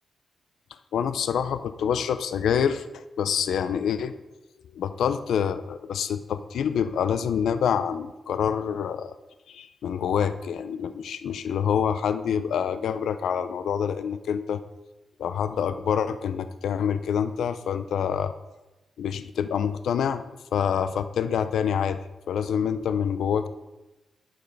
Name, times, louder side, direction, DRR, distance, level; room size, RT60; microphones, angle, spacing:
voice 1, 0.9-4.1 4.7-9.2 9.5-14.6 15.2-18.3 19.0-20.2 20.5-22.0 22.3-23.5, left 8 dB, 90° left, 11 dB, 0.5 m, -26 dB
12.5 x 5.4 x 4.0 m, 1.0 s
cardioid pair, 80°, 0 cm